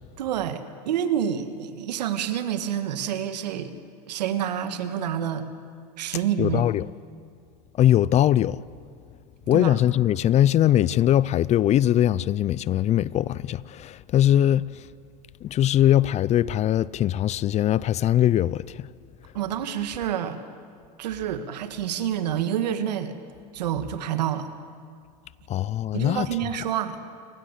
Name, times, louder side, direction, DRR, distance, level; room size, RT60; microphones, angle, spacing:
voice 1, 0.2-3.7 4.1-5.5 6.0-6.6 9.5-9.8 19.3-20.4 21.0-23.1 23.5-24.5 25.9-27.0, right 9 dB, 90° right, 1.9 m, -28 dB
voice 2, 6.4-6.9 7.8-8.6 9.5-14.6 15.4-18.9 25.5-26.3, left 12 dB, 35° left, 0.6 m, -21 dB
29.0 x 20.0 x 8.2 m
supercardioid pair, 115°, 21 cm